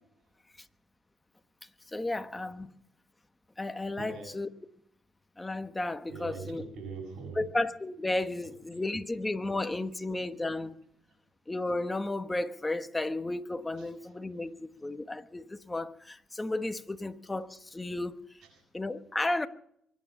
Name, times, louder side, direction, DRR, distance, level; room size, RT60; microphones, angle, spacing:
voice 1, 1.9-2.7 3.6-4.5 5.4-6.6 7.3-10.8 11.5-18.2 18.7-19.5, left 2 dB, 15° left, 1.2 m, -33 dB
voice 2, 4.0-4.3 6.1-7.5 8.2-9.1 13.8-14.2 18.3-18.6, right 4 dB, 65° right, 7.0 m, -44 dB
24.0 x 9.7 x 6.0 m
cardioid pair, 100°, 0 cm